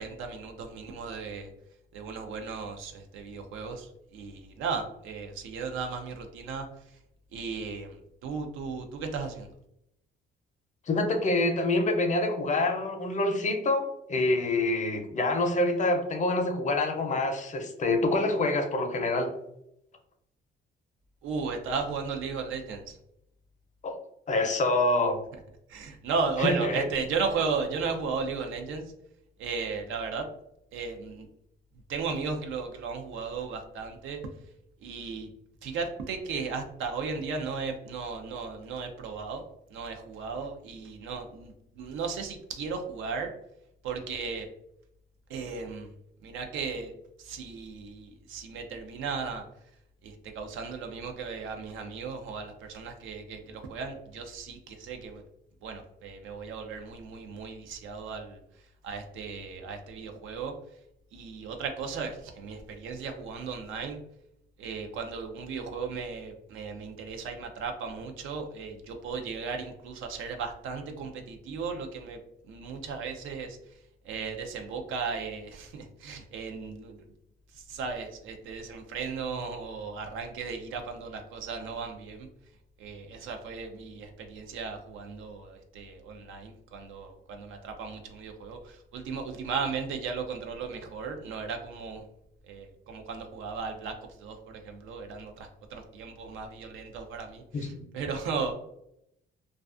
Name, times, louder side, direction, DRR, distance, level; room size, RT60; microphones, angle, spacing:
voice 1, 0.0-1.5 1.9-6.7 7.3-9.5 21.2-23.0 25.7-28.8 29.4-30.3 30.7-31.3 31.9-34.2 34.8-35.3 35.6-39.4 39.7-43.3 43.8-44.5 45.3-45.9 46.2-46.9 47.2-49.4 50.0-55.2 55.6-58.4 58.8-60.5 61.1-64.0 64.6-72.2 72.5-73.6 74.1-77.0 77.7-82.3 82.8-92.0 92.5-93.9 94.2-98.5, right 5 dB, 85° right, 4 dB, 0.5 m, -35 dB
voice 2, 10.9-19.3 23.8-24.0 24.3-25.2 26.4-26.9 97.5-97.7, left 2 dB, 40° left, 5 dB, 0.5 m, -26 dB
2.3 x 2.3 x 2.4 m, 0.77 s
cardioid pair, 90°, 20 cm